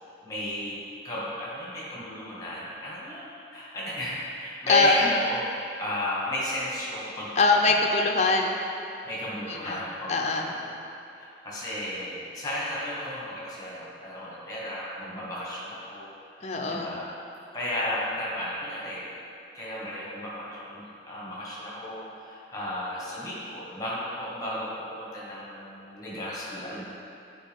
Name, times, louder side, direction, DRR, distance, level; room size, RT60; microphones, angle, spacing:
voice 1, 0.2-5.5 5.8-7.4 8.2-8.4 9.0-10.8 11.2-16.1 16.6-17.1 17.5-19.1 19.5-26.8, left 1 dB, 20° left, -7 dB, 1.4 m, -34 dB
voice 2, 4.7-5.2 7.4-8.6 9.5-9.8 10.1-10.5 16.4-16.9, left 3 dB, 35° left, 2 dB, 0.5 m, -22 dB
8.0 x 4.5 x 3.6 m, 2.6 s
head